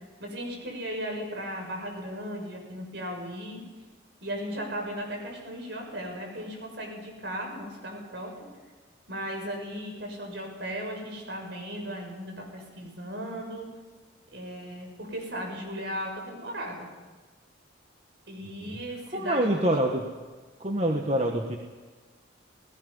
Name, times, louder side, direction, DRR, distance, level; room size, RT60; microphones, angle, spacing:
voice 1, 0.2-3.6 4.2-8.3 9.1-13.7 14.3-16.9 18.3-19.7, equal, 60° right, 1 dB, 6.5 m, -36 dB
voice 2, 19.1-20.0 20.6-21.6, right 1 dB, 35° right, 2 dB, 1.5 m, -26 dB
29.0 x 18.5 x 5.6 m, 1.4 s
head